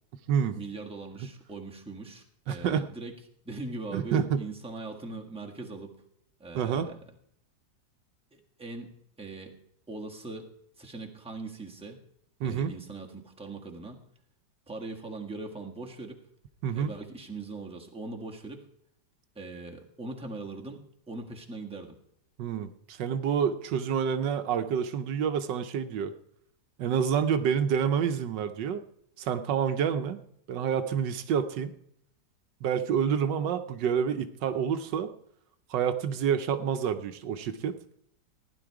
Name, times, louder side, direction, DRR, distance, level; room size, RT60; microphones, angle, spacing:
voice 1, 0.5-3.1 3.4-6.0 6.4-7.0 8.3-9.5 9.9-10.5 10.8-12.0 12.4-14.0 14.7-16.2 16.7-18.6 19.3-21.9, right 3 dB, 5° right, 0 dB, 1.3 m, -41 dB
voice 2, 2.5-2.9 3.9-4.5 6.5-6.9 12.4-12.7 16.6-16.9 22.4-26.1 26.8-28.8 29.2-30.2 30.5-31.7 32.6-35.1 35.7-37.8, right 7 dB, 85° right, 10 dB, 1.4 m, -28 dB
15.5 x 10.5 x 4.7 m, 0.71 s
omnidirectional pair, 1.9 m